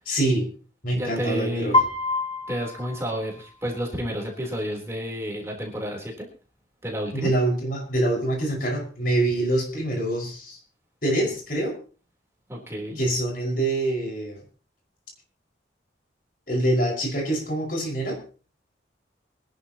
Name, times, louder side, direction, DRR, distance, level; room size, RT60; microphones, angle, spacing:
voice 1, 0.1-0.5 0.8-1.8 7.1-10.6 11.0-11.8 13.0-14.4 16.5-18.2, right 1 dB, 50° left, 0 dB, 5.6 m, -25 dB
voice 2, 0.9-1.8 2.5-6.3 6.8-7.3 12.5-13.0, equal, 15° right, -1 dB, 3.7 m, -30 dB
Piano, 1.7-3.8, left 2 dB, 30° left, 2.1 m, -26 dB
25.0 x 11.0 x 3.0 m, 0.37 s
head